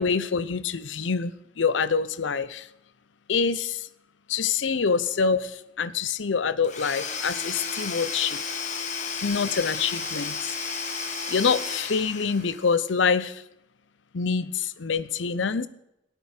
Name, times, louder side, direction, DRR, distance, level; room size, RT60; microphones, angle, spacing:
voice 1, 0.0-2.7 3.3-3.9 4.3-8.4 9.2-10.5 11.3-13.4 14.1-15.7, left 5 dB, 90° left, 16 dB, 0.6 m, -26 dB
Domestic sounds home sounds / Tools, 6.6-12.8, left 5 dB, 40° left, 1.6 m, -33 dB
17.5 x 9.0 x 4.4 m, 0.84 s
head